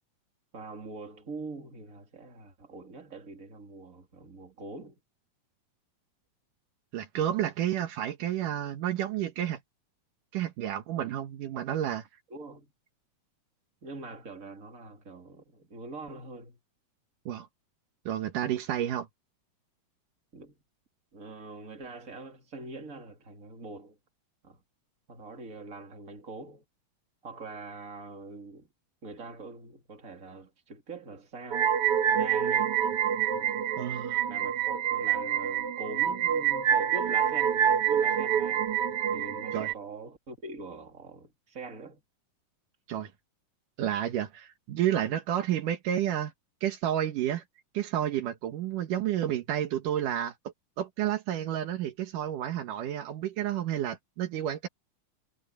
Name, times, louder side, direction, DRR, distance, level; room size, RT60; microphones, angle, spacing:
voice 1, 0.5-5.0 12.3-12.7 13.8-16.6 20.3-20.6 21.1-24.0 24.4-24.6 25.1-26.6 27.2-28.7 29.0-31.7 32.1-32.8 33.3-33.6 34.3-38.7 39.1-42.0, right 3 dB, 25° right, 3.1 m, -43 dB
voice 2, 6.9-9.6 10.3-12.1 17.3-17.5 18.1-19.1 33.8-34.2 39.5-39.7 42.9-43.1 43.8-46.3 46.6-47.4 47.7-50.3 50.8-54.7, right 11 dB, 75° right, 2.9 m, -30 dB
sound 1, 31.5-39.7, right 9 dB, 55° right, 1.8 m, -27 dB
omnidirectional pair, 3.8 m